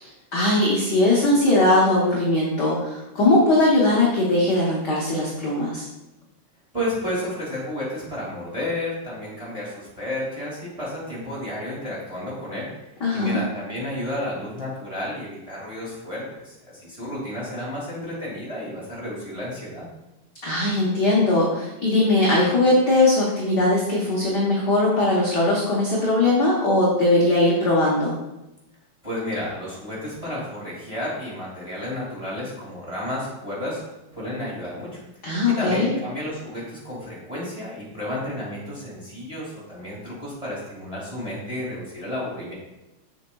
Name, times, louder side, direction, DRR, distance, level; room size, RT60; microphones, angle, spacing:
voice 1, 0.0-5.9 13.0-13.4 20.4-28.1 35.2-35.9, left 2 dB, 60° left, -5 dB, 1.0 m, -20 dB
voice 2, 6.7-12.7 13.1-19.9 29.0-33.8 34.1-35.0 35.3-42.5, left 1 dB, 15° right, -6 dB, 1.8 m, -31 dB
7.2 x 6.9 x 2.3 m, 0.96 s
omnidirectional pair, 3.4 m